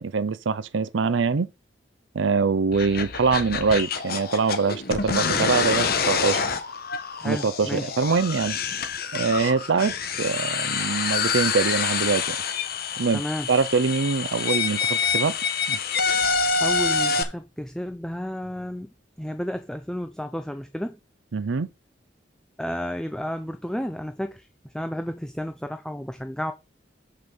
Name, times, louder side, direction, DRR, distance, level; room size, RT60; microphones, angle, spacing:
voice 1, 0.0-1.5 2.1-6.4 7.2-8.6 9.1-12.4 13.0-13.2 13.5-15.4 15.7-15.8 21.3-21.7, right 4 dB, 85° right, 0.5 m, -24 dB
sound 1, 2.7-17.2, left 5 dB, 55° left, 1.3 m, -26 dB
voice 2, 7.2-7.9 13.1-13.5 16.6-18.9 19.2-21.0 22.6-26.5, equal, 5° left, 0.6 m, -32 dB
8.1 x 5.3 x 6.1 m
head